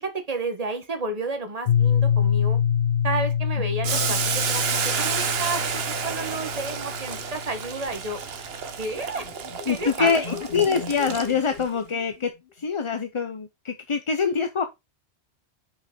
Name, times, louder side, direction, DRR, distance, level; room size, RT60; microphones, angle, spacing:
voice 1, 0.0-2.6 3.0-8.2 8.8-9.3 9.7-10.4, right 3 dB, 35° right, 1.4 m, -31 dB
Piano, 1.7-7.3, left 8 dB, 90° left, 0.9 m, -25 dB
Boiling, 3.8-11.6, right 7 dB, 65° right, 1.1 m, -30 dB
sound 1, 8.6-12.6, left 8 dB, 50° left, 1.1 m, -39 dB
voice 2, 9.7-12.3 12.6-14.6, left 6 dB, 35° left, 0.5 m, -24 dB
5.8 x 5.7 x 3.8 m
omnidirectional pair, 1.1 m